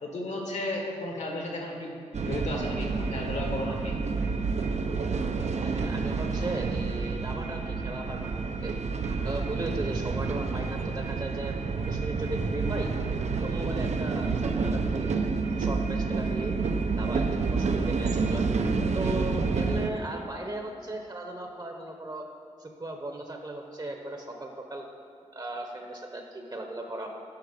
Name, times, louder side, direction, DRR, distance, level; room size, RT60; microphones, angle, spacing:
voice 1, 0.0-4.0, left 2 dB, 70° left, 1 dB, 1.6 m, -34 dB
sound 1, 2.1-19.9, right 4 dB, 65° right, 0.6 m, -29 dB
voice 2, 5.5-8.7 9.2-12.9 13.4-15.1 15.6-16.5 17.0-18.5 18.9-22.2 22.6-24.8 25.3-27.1, right 2 dB, 35° right, 3 dB, 0.9 m, -37 dB
10.5 x 4.4 x 4.9 m, 2.6 s
cardioid pair, 65°, 13 cm